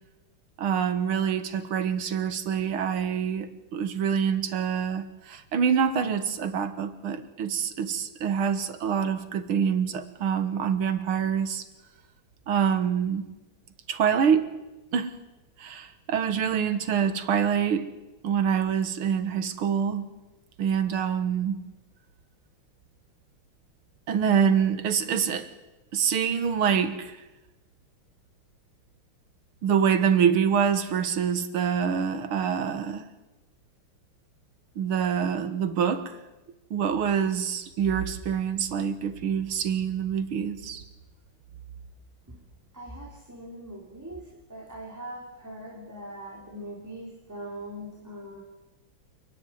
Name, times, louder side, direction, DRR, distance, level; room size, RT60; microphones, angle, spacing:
voice 1, 0.6-11.6 12.5-13.3 13.9-14.5 14.9-15.1 15.6-17.9 18.2-20.1 20.6-21.5 24.1-25.5 25.9-27.2 29.6-33.1 34.8-36.2 36.7-40.8, right 7 dB, 80° right, 11 dB, 2.2 m, -26 dB
voice 2, 42.7-44.2 44.5-48.4, right 1 dB, 10° right, -2 dB, 3.3 m, -41 dB
28.5 x 10.5 x 9.4 m, 1.1 s
omnidirectional pair, 2.3 m